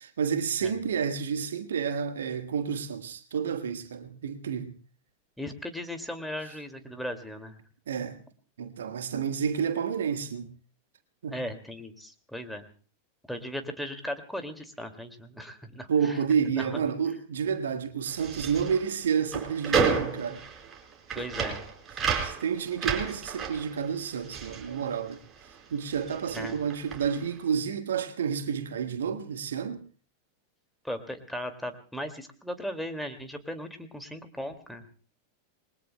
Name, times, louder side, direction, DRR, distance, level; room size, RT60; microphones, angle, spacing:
voice 1, 0.0-4.7 7.9-8.2 8.6-10.5 11.2-11.4 15.9-20.4 21.1-21.3 22.2-25.2 25.7-29.8, right 7 dB, 65° right, 1.5 m, -30 dB
voice 2, 5.4-7.6 11.3-12.7 13.3-16.2 16.5-16.8 21.2-21.6 26.3-26.6 30.8-34.8, equal, ahead, 2.3 m, -37 dB
sound 1, 18.1-25.6 25.8-27.3, right 5 dB, 25° right, 4.3 m, -32 dB
28.0 x 21.5 x 2.2 m
figure-of-eight pair, 90°, 0 cm